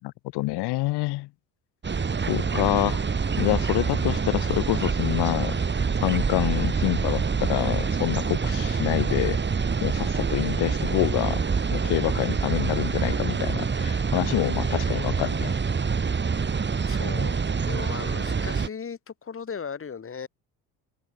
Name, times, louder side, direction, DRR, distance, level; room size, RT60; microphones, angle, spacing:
voice 1, 0.0-1.3 2.2-3.0 3.4-5.6 6.0-9.4 9.8-11.4 11.7-15.6, left 20 dB, 85° left, 7.0 m, -27 dB
sound 1, 1.8-18.7, right 5 dB, 30° right, 6.3 m, -26 dB
voice 2, 16.9-17.3 17.6-20.3, left 6 dB, 35° left, 7.9 m, -36 dB
cardioid pair, 115°, 39 cm